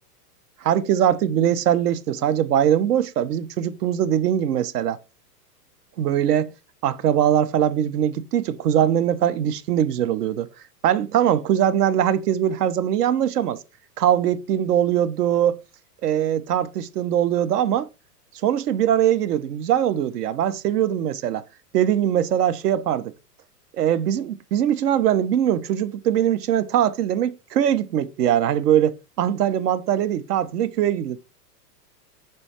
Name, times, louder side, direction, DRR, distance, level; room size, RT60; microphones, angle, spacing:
voice 1, 0.6-5.0 6.0-6.5 6.8-10.5 10.8-13.6 14.0-15.6 16.0-17.9 18.4-21.4 21.7-23.1 23.8-31.2, right 10 dB, 75° right, 0.6 m, -21 dB
4.3 x 2.3 x 4.7 m
hypercardioid pair, 115°, 48 cm